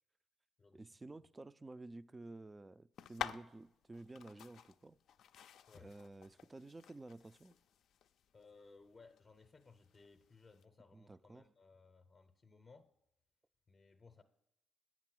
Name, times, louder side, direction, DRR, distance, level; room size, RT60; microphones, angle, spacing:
voice 1, 0.7-5.0 5.8-7.5 10.9-11.5, right 2 dB, 20° right, 16 dB, 0.3 m, -52 dB
sound 1, 2.9-10.6, left 9 dB, 75° left, 0.4 m, -50 dB
voice 2, 8.3-12.9 13.7-14.2, left 4 dB, 35° left, 7 dB, 0.6 m, -62 dB
8.5 x 6.0 x 7.5 m, 0.82 s
cardioid pair, 90°, 0 cm